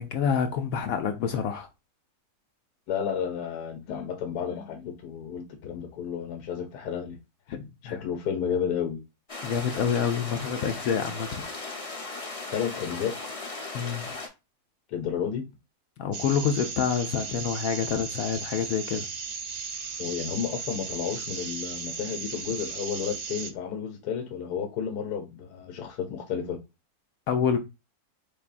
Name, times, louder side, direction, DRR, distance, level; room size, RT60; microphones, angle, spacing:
voice 1, 0.0-1.7 7.5-8.0 9.4-11.4 13.7-14.1 16.0-19.1 27.3-27.6, left 7 dB, 70° left, 1.0 m, -27 dB
voice 2, 2.9-7.2 7.9-9.0 12.5-13.2 14.9-15.5 20.0-26.6, left 8 dB, 85° left, 1.2 m, -32 dB
sound 1, 9.3-14.3, left 3 dB, 25° left, 0.9 m, -37 dB
sound 2, 16.1-23.5, right 5 dB, 90° right, 0.3 m, -36 dB
4.6 x 3.5 x 2.4 m
omnidirectional pair, 1.6 m